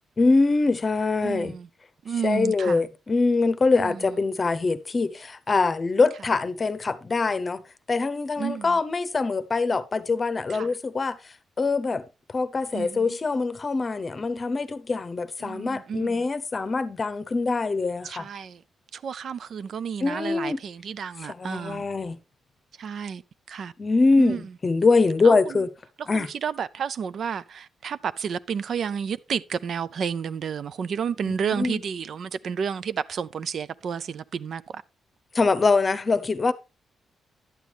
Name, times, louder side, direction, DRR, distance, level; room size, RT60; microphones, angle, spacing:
voice 1, 0.2-1.6 2.2-7.6 7.9-12.0 12.3-18.3 20.0-20.6 21.2-22.2 23.8-25.7 26.1-26.3 31.2-31.8 35.3-36.5, left 3 dB, 35° left, 0.8 m, -24 dB
voice 2, 1.2-1.7 2.0-2.8 3.7-4.1 8.4-8.7 10.5-10.7 12.7-13.2 15.4-16.2 18.0-18.6 18.9-21.8 22.8-23.2 23.5-23.7 24.2-24.4 25.2-25.6 26.1-34.8, right 7 dB, 60° right, 0.4 m, -31 dB
11.5 x 8.3 x 3.3 m
cardioid pair, 105°, 0 cm